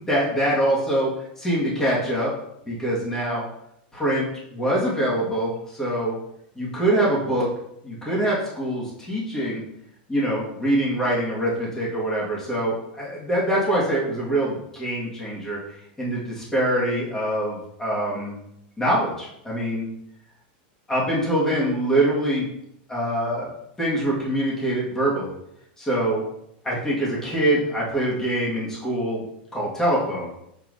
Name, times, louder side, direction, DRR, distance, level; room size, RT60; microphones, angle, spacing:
voice 1, 0.1-1.1 1.4-2.3 2.7-3.4 3.9-4.3 4.5-6.2 6.6-7.5 7.8-9.6 10.1-15.6 16.0-18.4 18.8-19.9 20.9-22.5 22.9-23.5 23.8-25.3 25.8-26.2 26.6-29.2 29.5-30.3, right 1 dB, 10° left, -6 dB, 1.9 m, -24 dB
6.8 x 5.6 x 2.7 m, 0.78 s
supercardioid pair, 160°, 5 cm